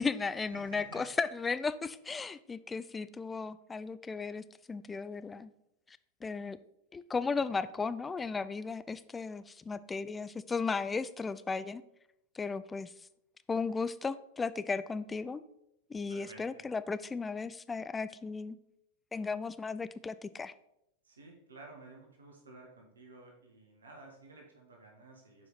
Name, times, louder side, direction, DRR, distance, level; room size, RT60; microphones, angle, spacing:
voice 1, 0.0-5.5 5.9-6.6 6.9-11.8 12.3-12.9 13.5-15.4 15.9-18.6 19.1-20.5, left 4 dB, 15° left, 14 dB, 0.3 m, -35 dB
voice 2, 0.5-1.0 16.1-16.7 21.1-25.5, right 2 dB, 70° right, 0 dB, 1.4 m, -53 dB
7.4 x 4.9 x 4.0 m, 0.81 s
figure-of-eight pair, 90°, 0 cm